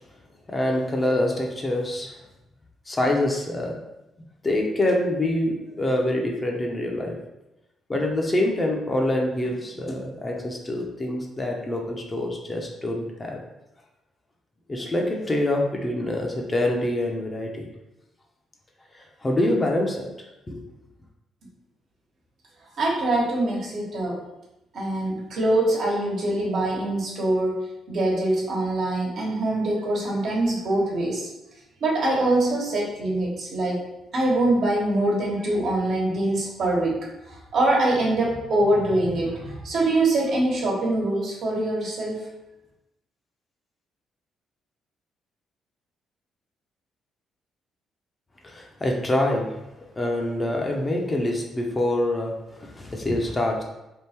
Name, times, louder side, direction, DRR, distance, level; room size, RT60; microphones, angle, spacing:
voice 1, 0.5-2.2 2.9-3.8 4.4-7.2 7.9-13.4 14.7-17.7 19.2-20.1 20.5-20.6 48.4-49.5 50.0-52.3 52.6-53.6, left 1 dB, 25° left, 0 dB, 0.8 m, -25 dB
voice 2, 22.8-24.2 24.7-31.3 31.8-33.9 34.1-37.0 37.3-42.2, right 1 dB, 65° right, -3 dB, 1.3 m, -24 dB
3.6 x 2.5 x 4.3 m, 0.93 s
cardioid pair, 90°, 0 cm